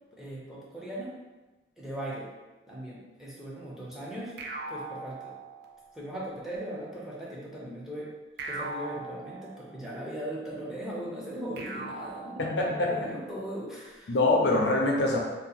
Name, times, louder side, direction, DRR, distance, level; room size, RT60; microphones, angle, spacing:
voice 1, 0.1-1.1 1.8-2.3 2.7-4.3 4.7-5.4 5.9-8.1 8.4-14.2, right 1 dB, ahead, -6 dB, 0.5 m, -39 dB
sound 1, 4.4-6.0 8.4-10.0 11.6-13.1, right 2 dB, 55° right, 0.4 m, -40 dB
voice 2, 12.4-13.1 14.1-15.2, left 2 dB, 65° left, 0 dB, 0.5 m, -24 dB
2.7 x 2.0 x 4.0 m, 1.2 s
head